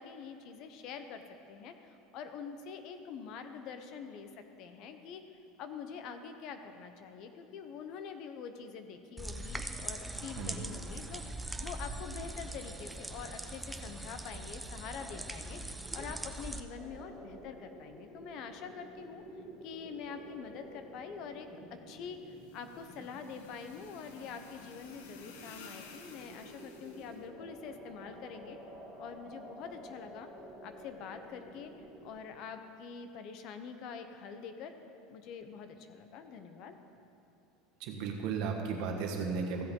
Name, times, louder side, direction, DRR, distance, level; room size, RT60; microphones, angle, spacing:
voice 1, 0.0-5.2 5.6-19.2 19.6-28.6 29.0-30.3 30.6-31.7 32.0-34.7 35.1-36.8, left 6 dB, 50° left, 8 dB, 0.8 m, -45 dB
sound 1, 9.2-16.6, right 1 dB, 5° right, 0.5 m, -41 dB
sound 2, 16.8-32.1, equal, 15° left, 2.0 m, -51 dB
sound 3, 22.3-27.2, left 5 dB, 85° left, 1.0 m, -55 dB
voice 2, 37.8-39.6, right 5 dB, 60° right, 2 dB, 1.4 m, -35 dB
15.0 x 7.8 x 3.8 m, 2.9 s
supercardioid pair, 140°, 0 cm